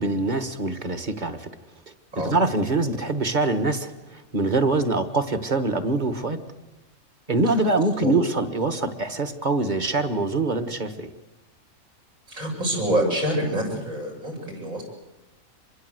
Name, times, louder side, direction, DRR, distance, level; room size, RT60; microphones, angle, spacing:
voice 1, 0.0-1.5 2.2-6.4 7.3-11.1, right 2 dB, 35° right, 9 dB, 1.7 m, -24 dB
voice 2, 12.3-14.8, right 1 dB, 75° right, 0 dB, 7.8 m, -26 dB
26.5 x 22.0 x 8.0 m, 1.0 s
omnidirectional pair, 1.4 m